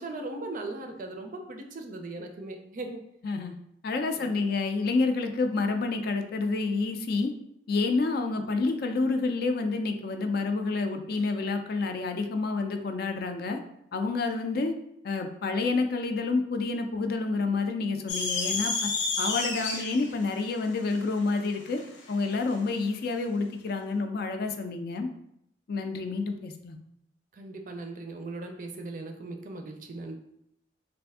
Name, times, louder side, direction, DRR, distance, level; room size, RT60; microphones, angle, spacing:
voice 1, 0.0-3.0 4.1-4.3 27.3-30.2, right 2 dB, 45° right, 4 dB, 0.4 m, -38 dB
voice 2, 3.2-3.5 3.8-7.3 7.7-13.6 13.9-14.7 15.0-18.9 19.2-21.8 22.1-25.1 25.7-26.8, left 3 dB, 55° left, 6 dB, 0.4 m, -28 dB
sound 1, 18.1-22.6, left 3 dB, 80° left, 0.7 m, -31 dB
3.3 x 2.5 x 3.5 m, 0.76 s
head